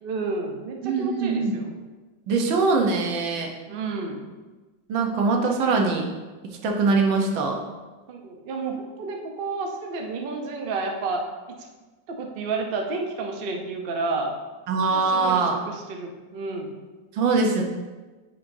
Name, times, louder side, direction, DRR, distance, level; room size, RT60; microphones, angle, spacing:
voice 1, 0.0-1.7 3.7-4.2 8.1-11.7 12.1-14.3 14.9-16.7, right 3 dB, 65° right, 2 dB, 0.5 m, -31 dB
voice 2, 0.8-1.6 2.3-3.5 4.9-6.1 6.6-7.6 14.7-15.6 17.1-17.6, right 4 dB, 90° right, 1 dB, 1.6 m, -22 dB
8.7 x 5.1 x 2.6 m, 1.3 s
omnidirectional pair, 2.0 m